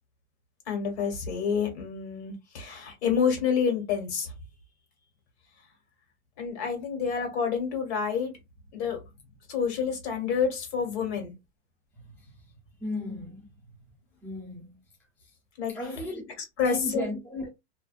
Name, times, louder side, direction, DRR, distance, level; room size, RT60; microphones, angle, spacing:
voice 1, 0.7-4.3 6.4-8.3 8.7-9.0 9.5-11.3 15.6-15.7 16.6-17.0, left 6 dB, 65° left, 1.5 m, -28 dB
voice 2, 12.0-12.5 12.8-13.5 14.2-14.8 15.2-15.3 15.7-17.5, left 1 dB, 5° left, 0.7 m, -36 dB
2.5 x 2.3 x 2.4 m
supercardioid pair, 155°, 35 cm